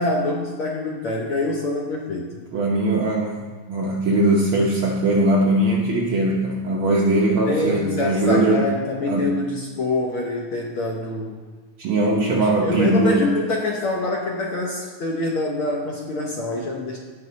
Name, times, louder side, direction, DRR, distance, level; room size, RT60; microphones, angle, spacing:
voice 1, 0.0-2.3 7.4-11.4 11.9-17.0, left 2 dB, 60° left, -1 dB, 1.5 m, -25 dB
voice 2, 2.5-3.4 3.7-8.7 9.1-9.3 11.8-13.2, right 2 dB, 65° right, -2 dB, 1.4 m, -20 dB
16.0 x 5.4 x 4.1 m, 1.4 s
omnidirectional pair, 3.3 m